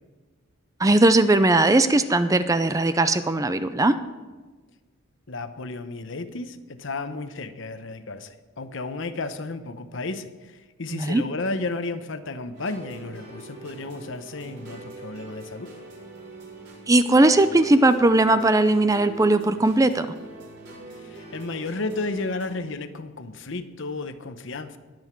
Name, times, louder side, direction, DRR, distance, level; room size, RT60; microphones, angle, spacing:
voice 1, 0.8-4.0 10.9-11.2 16.9-20.1, right 2 dB, 15° right, 11 dB, 0.5 m, -19 dB
voice 2, 5.3-15.7 20.9-24.8, left 3 dB, 65° left, 10 dB, 0.9 m, -33 dB
sound 1, 12.5-22.6, right 2 dB, 55° right, 4.6 m, -43 dB
21.0 x 8.0 x 4.6 m, 1.3 s
head